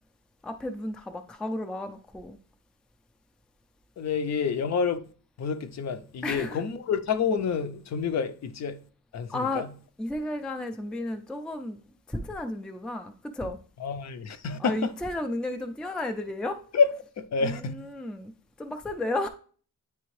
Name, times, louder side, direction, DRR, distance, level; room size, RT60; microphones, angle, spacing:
voice 1, 0.4-2.4 6.2-6.6 9.3-9.7 10.0-11.8 12.1-13.6 14.6-16.6 17.4-18.3 18.6-19.3, left 2 dB, 5° left, 0.3 m, -33 dB
voice 2, 4.0-5.0 5.4-8.8 9.1-9.7 13.8-14.9 16.7-16.9 17.2-17.7, left 5 dB, 55° left, 0.5 m, -28 dB
9.2 x 3.4 x 3.1 m
wide cardioid pair, 175°, 34 cm